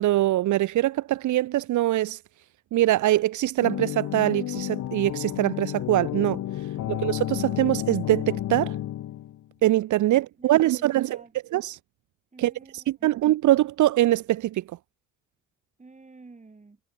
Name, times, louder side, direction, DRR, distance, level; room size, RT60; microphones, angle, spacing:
voice 1, 0.0-2.2 2.7-6.4 6.9-8.7 9.6-11.2 11.5-11.8 12.4-14.6, right 15 dB, 75° right, 1.0 m, -23 dB
sound 1, 3.6-9.5, left 13 dB, 70° left, 1.4 m, -31 dB
voice 2, 10.1-11.3 12.3-13.2 15.8-16.8, right 3 dB, 25° right, 7.2 m, -51 dB
cardioid pair, 90°, 30 cm